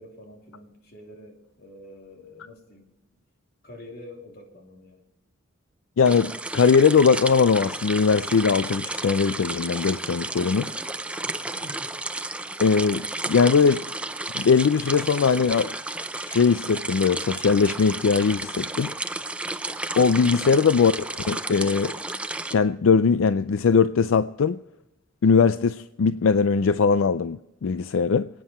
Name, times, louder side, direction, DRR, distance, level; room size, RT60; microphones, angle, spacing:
voice 1, 0.0-2.9 3.6-5.0 11.2-11.9 12.2-12.3, left 1 dB, 50° left, 2.9 m, -46 dB
voice 2, 6.0-10.7 12.6-13.9 14.3-15.7 16.1-18.9 20.0-20.9 21.3-22.0 22.5-24.6 25.2-28.3, left 5 dB, 85° left, 0.4 m, -20 dB
sound 1, 6.0-22.5, right 2 dB, 5° right, 0.4 m, -32 dB
27.0 x 9.3 x 4.3 m
head